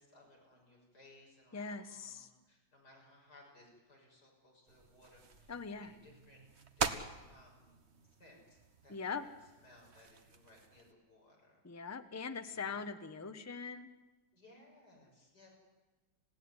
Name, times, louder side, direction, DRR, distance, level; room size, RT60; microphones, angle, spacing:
voice 1, 0.0-6.4 6.8-9.1 9.6-11.6 12.5-12.7 14.3-15.5, left 1 dB, 50° left, -1 dB, 7.1 m, -63 dB
voice 2, 1.5-2.3 5.5-5.9 8.9-9.2 11.6-13.9, left 5 dB, 15° left, 8 dB, 0.7 m, -41 dB
sound 1, 4.7-10.9, right 5 dB, 35° right, 1.3 m, -44 dB
27.5 x 16.5 x 9.8 m, 1.2 s
omnidirectional pair, 2.3 m